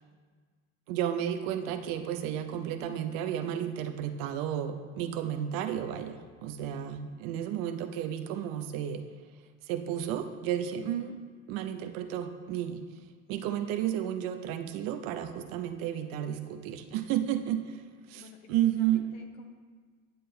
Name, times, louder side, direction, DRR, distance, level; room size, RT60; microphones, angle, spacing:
voice 1, 0.9-9.0 9.7-11.1 11.5-12.8 13.3-17.8 18.1-19.1, right 10 dB, 65° right, 8 dB, 0.7 m, -32 dB
voice 2, 10.8-11.2 18.1-19.5, left 6 dB, 75° left, 4 dB, 1.0 m, -52 dB
10.0 x 7.6 x 2.2 m, 1.5 s
hypercardioid pair, 75°, 37 cm